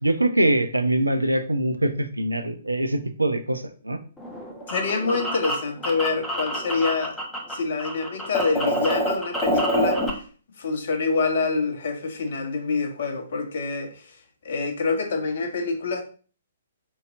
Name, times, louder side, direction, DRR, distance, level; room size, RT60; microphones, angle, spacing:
voice 1, 0.0-4.0, right 1 dB, 85° right, 0.4 m, -23 dB
sound 1, 4.2-7.5 7.8-10.1, equal, 5° left, 0.7 m, -26 dB
voice 2, 4.7-7.2 7.5-10.0 10.6-14.1 14.4-16.0, left 4 dB, 50° left, 0.6 m, -26 dB
4.5 x 2.7 x 2.5 m
figure-of-eight pair, 120°, 0 cm